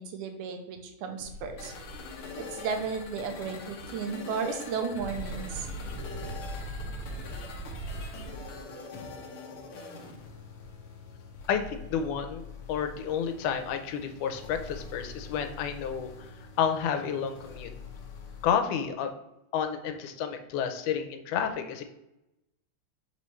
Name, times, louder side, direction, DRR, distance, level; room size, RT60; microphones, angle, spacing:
voice 1, 0.0-1.7 2.4-5.7, right 5 dB, 90° right, 6 dB, 2.2 m, -34 dB
sound 1, 1.2-4.1 4.4-4.5 4.8-8.6, right 2 dB, 70° right, 1.7 m, -40 dB
sound 2, 1.6-18.5, left 4 dB, 70° left, 1.4 m, -44 dB
voice 2, 11.5-16.1 16.6-17.7 18.4-19.1 19.5-21.8, left 7 dB, 90° left, 7 dB, 2.1 m, -30 dB
5.5 x 3.1 x 5.5 m, 0.89 s
omnidirectional pair, 3.5 m